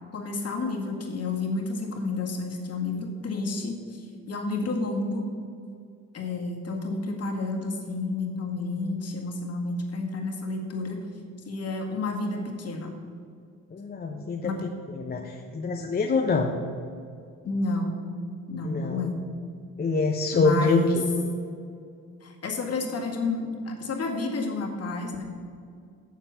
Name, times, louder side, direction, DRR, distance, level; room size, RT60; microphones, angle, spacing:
voice 1, 0.1-5.2 6.1-11.0 11.5-12.9 14.4-14.6 17.4-18.0 18.5-19.2 20.3-21.0 22.2-25.2, left 3 dB, 55° left, 1 dB, 1.9 m, -30 dB
voice 2, 13.7-16.6 18.6-19.1 19.8-20.8, left 4 dB, 30° left, 2 dB, 0.8 m, -26 dB
7.5 x 7.3 x 6.7 m, 2.4 s
cardioid pair, 90°, 30 cm